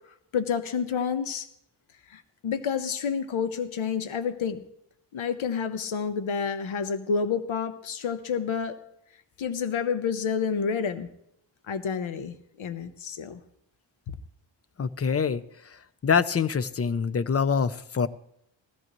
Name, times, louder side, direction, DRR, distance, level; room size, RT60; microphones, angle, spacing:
voice 1, 0.3-1.5 2.1-4.6 5.1-8.8 9.4-11.1 11.7-13.4, left 6 dB, 80° left, 11 dB, 1.0 m, -29 dB
voice 2, 14.8-15.4 16.0-18.1, left 6 dB, 30° left, 15 dB, 0.5 m, -25 dB
17.5 x 13.5 x 3.0 m, 0.74 s
wide cardioid pair, 115°, 47 cm